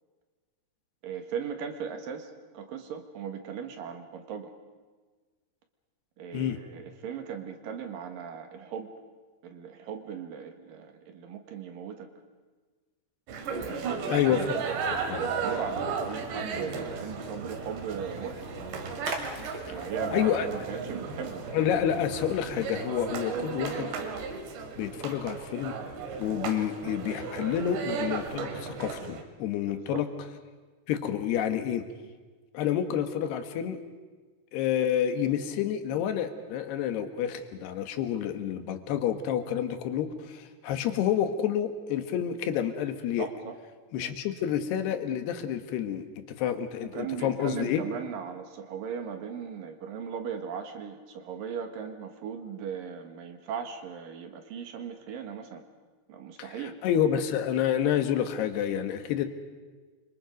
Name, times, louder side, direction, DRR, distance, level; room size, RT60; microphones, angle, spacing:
voice 1, 1.0-4.5 6.2-8.9 9.4-12.1 13.6-14.3 14.5-18.5 19.6-21.4 29.7-30.1 43.2-43.6 44.0-44.1 46.8-55.6 56.1-56.8, right 7 dB, 60° right, 6 dB, 3.0 m, -38 dB
sound 1, 13.3-29.2, right 5 dB, 90° right, 4.1 m, -35 dB
voice 2, 14.1-14.6 14.9-15.2 20.1-20.5 21.5-23.9 24.8-25.8 26.2-30.1 30.9-31.9 32.5-33.8 34.5-43.3 43.9-47.8 56.4-56.5 56.8-59.3, left 9 dB, 75° left, 8 dB, 3.4 m, -29 dB
Splash splatter, 14.1-22.8, right 2 dB, 35° right, 2.8 m, -43 dB
28.0 x 25.0 x 5.3 m, 1.4 s
omnidirectional pair, 4.9 m